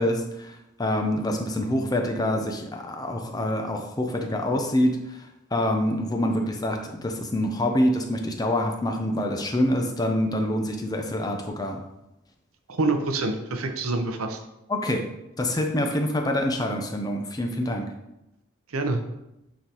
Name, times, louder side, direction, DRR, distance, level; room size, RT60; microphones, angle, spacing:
voice 1, 0.0-11.8 14.7-15.0 15.4-17.9, left 1 dB, 20° left, 3 dB, 0.5 m, -26 dB
voice 2, 12.7-14.4 18.7-19.0, right 3 dB, 90° right, 5 dB, 0.8 m, -26 dB
8.4 x 3.9 x 2.9 m, 0.89 s
head